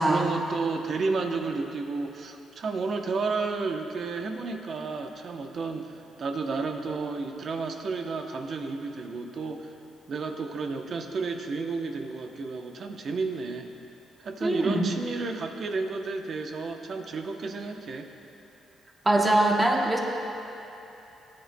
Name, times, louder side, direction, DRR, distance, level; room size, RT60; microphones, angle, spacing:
voice 1, 0.0-9.7 10.1-13.7 14.2-18.1, right 4 dB, 50° right, 4 dB, 0.8 m, -32 dB
voice 2, 14.4-14.9 19.0-20.0, right 1 dB, 10° right, 0 dB, 1.1 m, -22 dB
17.5 x 9.6 x 2.2 m, 2.9 s
cardioid pair, 120°, 0 cm